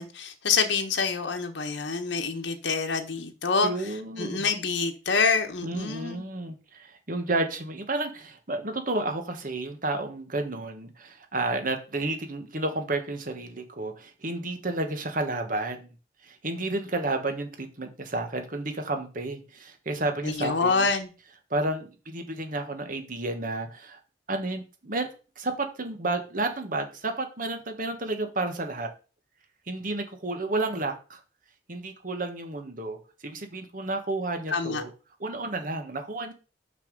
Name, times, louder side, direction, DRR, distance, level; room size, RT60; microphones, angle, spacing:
voice 1, 0.0-3.7 4.2-6.2 20.2-21.1 34.5-34.8, left 4 dB, 85° left, 1.2 m, -26 dB
voice 2, 3.6-4.5 5.6-15.9 16.2-20.9 21.5-24.0 24.3-25.1 25.4-28.9 29.7-31.2 31.7-33.0 33.2-34.9 35.2-36.3, right 2 dB, 50° right, 1.4 m, -31 dB
6.1 x 5.9 x 5.3 m
head